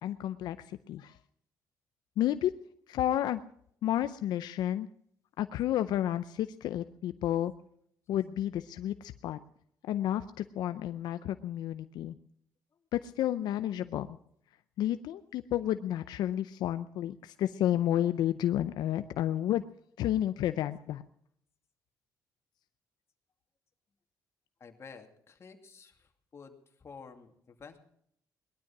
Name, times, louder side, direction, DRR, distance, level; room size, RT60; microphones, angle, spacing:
voice 1, 0.0-1.2 2.2-2.5 2.9-3.4 3.8-4.9 5.4-7.5 8.1-9.4 9.9-12.2 12.9-14.2 14.8-19.6 20.0-21.0, left 12 dB, 80° left, 11 dB, 0.6 m, -31 dB
voice 2, 24.6-27.8, left 5 dB, 40° left, 4 dB, 2.5 m, -51 dB
19.5 x 12.5 x 6.0 m, 0.68 s
cardioid pair, 105°, 7 cm